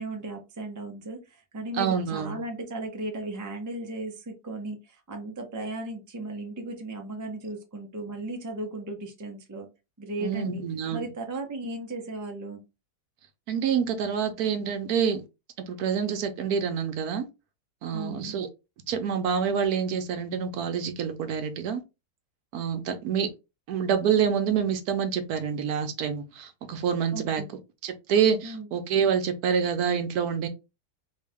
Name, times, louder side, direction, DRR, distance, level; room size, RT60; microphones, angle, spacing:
voice 1, 0.0-9.7 10.0-10.6 10.9-12.6 17.9-18.4 27.1-27.5 28.4-28.7, right 2 dB, 30° right, 0.3 m, -36 dB
voice 2, 1.8-2.4 10.2-11.1 13.5-15.2 15.7-17.2 17.8-18.5 18.9-21.8 22.5-23.3 23.7-27.4 27.8-30.5, right 7 dB, 70° right, 1.1 m, -27 dB
3.0 x 2.8 x 3.4 m
omnidirectional pair, 1.7 m